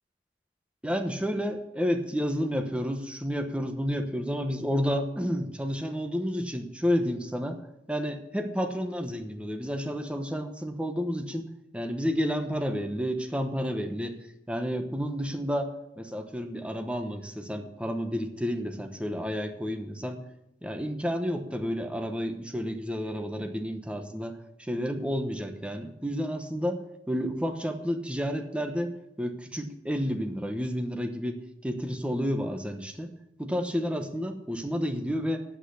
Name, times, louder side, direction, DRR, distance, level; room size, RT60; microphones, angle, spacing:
voice 1, 0.8-7.6 7.9-14.2 14.5-20.2 20.6-31.4 31.6-35.4, equal, 5° right, 5 dB, 0.9 m, -31 dB
8.9 x 8.1 x 8.2 m, 0.87 s
head